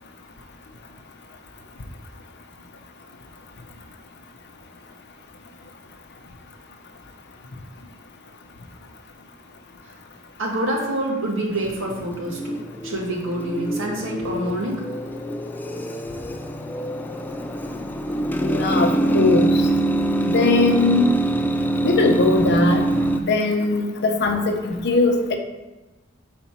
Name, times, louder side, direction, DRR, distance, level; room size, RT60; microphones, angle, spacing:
voice 1, 10.4-14.8, right 1 dB, 65° right, -1 dB, 1.3 m, -26 dB
sound 1, 11.6-23.2, right 1 dB, 10° left, 0.3 m, -24 dB
voice 2, 18.4-19.7 20.2-21.1 21.8-22.8 23.2-25.4, left 3 dB, 55° left, 4 dB, 0.7 m, -20 dB
4.4 x 4.2 x 5.7 m, 1.1 s
head